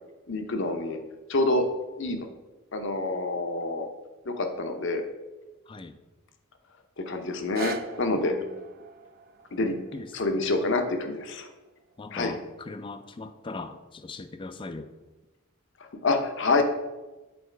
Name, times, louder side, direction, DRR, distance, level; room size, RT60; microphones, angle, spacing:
voice 1, 0.3-1.0 1.3-1.7 2.0-2.2 2.7-3.9 4.2-5.0 7.0-8.4 9.5-9.8 10.1-11.5 12.1-12.3 15.8-16.6, left 2 dB, 55° left, 6 dB, 0.8 m, -27 dB
voice 2, 5.7-6.0 8.2-8.6 9.9-10.5 12.0-14.9, left 3 dB, 25° left, 11 dB, 0.4 m, -40 dB
sound 1, 7.3-13.4 14.0-14.1, right 5 dB, 45° right, 0.4 m, -44 dB
7.9 x 4.1 x 4.5 m, 1.1 s
head